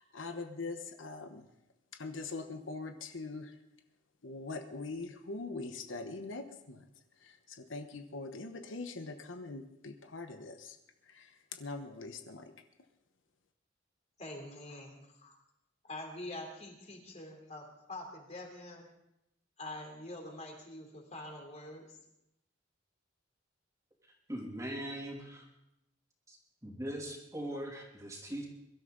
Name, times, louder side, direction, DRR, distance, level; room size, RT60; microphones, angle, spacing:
voice 1, 0.0-1.5 1.9-3.5 4.2-6.8 7.2-10.8 11.0-12.5, left 3 dB, 80° left, 7 dB, 1.1 m, -42 dB
voice 2, 14.2-15.3 15.8-18.9 19.6-21.9, left 1 dB, 35° left, 1 dB, 3.3 m, -45 dB
voice 3, 24.3-25.5 26.3-26.4 26.6-28.5, right 1 dB, 15° right, 0 dB, 2.8 m, -40 dB
23.0 x 12.5 x 3.9 m, 0.84 s
head